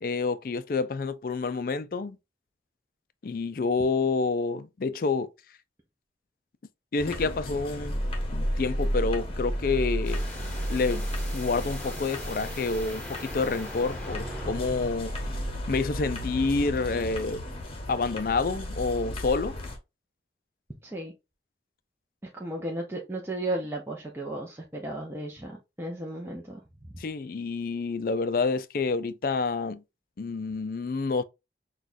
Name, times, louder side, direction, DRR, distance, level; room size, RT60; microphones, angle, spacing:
voice 1, 0.0-2.2 3.2-5.3 6.9-8.0 8.3-10.2 10.7-11.1 11.3-15.1 15.7-17.4 17.9-19.6 27.0-29.8 30.2-31.2, left 4 dB, 50° left, 0.4 m, -28 dB
sound 1, 7.0-19.8, equal, 30° left, 1.0 m, -33 dB
sound 2, 10.0-14.9, left 1 dB, 5° left, 1.5 m, -41 dB
voice 2, 20.8-21.1 22.2-27.0, right 1 dB, 15° right, 0.7 m, -35 dB
6.1 x 2.4 x 2.6 m
head